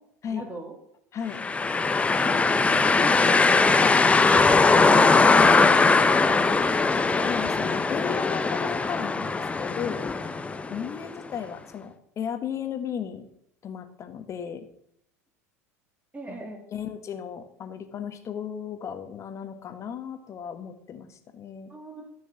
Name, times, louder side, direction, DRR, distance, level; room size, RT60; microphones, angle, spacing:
voice 1, 0.3-0.7 1.9-3.9 10.7-10.8 16.1-16.6 21.7-22.1, right 2 dB, 15° right, 2 dB, 2.9 m, -39 dB
voice 2, 1.1-1.5 6.9-10.3 10.7-13.3 13.6-14.7 16.3-16.4 16.7-21.7, left 8 dB, 35° left, 9 dB, 1.3 m, -35 dB
sound 1, 1.3-11.1, left 4 dB, 15° left, 0.7 m, -20 dB
13.0 x 6.3 x 6.3 m, 0.72 s
figure-of-eight pair, 75°, 9 cm